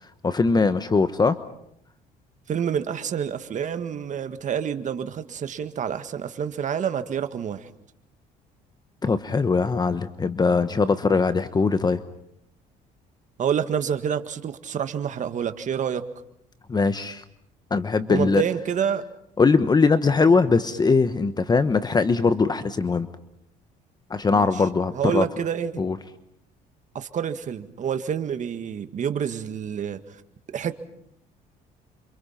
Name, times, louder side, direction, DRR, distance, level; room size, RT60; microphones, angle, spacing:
voice 1, 0.2-1.4 9.0-12.0 16.7-17.2 17.7-18.4 19.4-23.1 24.1-25.2 25.8-26.0, left 4 dB, 25° left, 1.1 m, -21 dB
voice 2, 2.5-7.7 13.4-16.1 18.1-19.0 24.3-24.6 24.9-25.8 26.9-30.2 30.5-30.7, right 8 dB, 45° right, 1.8 m, -28 dB
28.5 x 26.0 x 5.8 m
cardioid pair, 110°, 17 cm